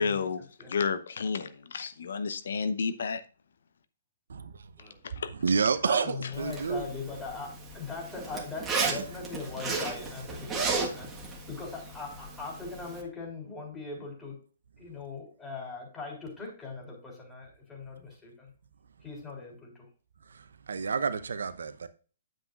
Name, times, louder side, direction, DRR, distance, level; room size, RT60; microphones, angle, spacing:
voice 1, 0.0-0.4 0.7-3.2 5.2-5.3, left 5 dB, 65° left, 0.9 m, -30 dB
voice 2, 4.3-4.7 5.1-6.9 8.8-9.0 20.3-21.9, right 5 dB, 70° right, 0.8 m, -30 dB
voice 3, 5.8-11.1 11.5-14.4 14.8-18.5 19.0-19.9, left 4 dB, 15° left, 4.2 m, -40 dB
Zipper (clothing), 6.3-13.0, right 4 dB, 15° right, 1.5 m, -35 dB
9.3 x 7.8 x 2.5 m
figure-of-eight pair, 125°, 0 cm